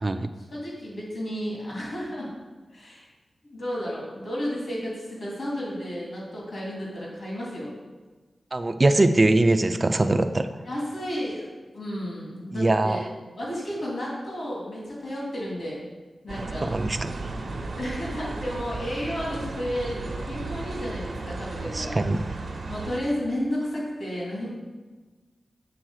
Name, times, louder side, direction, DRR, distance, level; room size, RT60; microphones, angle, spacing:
voice 1, 0.5-2.3 2.7-3.1 3.5-7.7 10.6-11.5 11.7-13.1 13.4-15.8 16.2-16.7 17.7-22.0 22.7-24.5, equal, 65° left, -5 dB, 2.5 m, -32 dB
voice 2, 8.5-10.5 12.5-13.0 16.6-17.1 21.7-22.2, right 2 dB, 30° right, 8 dB, 0.3 m, -22 dB
sound 1, 16.3-23.0, right 3 dB, 75° right, 0.9 m, -34 dB
7.7 x 3.9 x 6.4 m, 1.3 s
wide cardioid pair, 125°, 0 cm